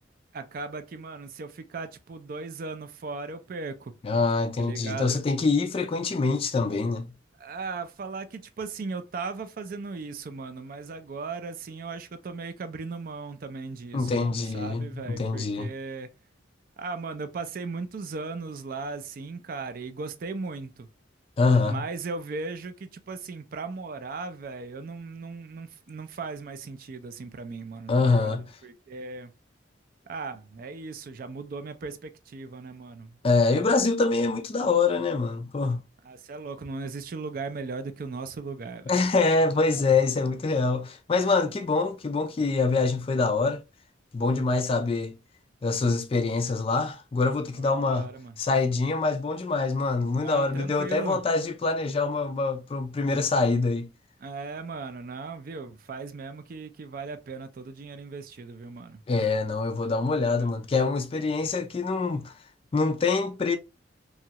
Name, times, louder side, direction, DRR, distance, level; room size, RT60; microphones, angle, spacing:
voice 1, 0.3-3.9 4.6-5.2 7.4-16.1 16.8-20.9 21.6-29.3 30.1-33.7 36.0-39.1 47.5-48.3 50.1-51.2 54.2-59.0 59.8-60.6, right 4 dB, 50° right, 0.4 m, -37 dB
voice 2, 4.0-7.0 13.9-15.7 21.4-21.8 27.9-28.4 33.2-35.8 38.9-43.6 44.1-45.1 45.6-48.1 48.4-53.9 59.1-62.3 62.7-63.6, left 3 dB, 30° left, 0.3 m, -25 dB
2.9 x 2.3 x 2.7 m
head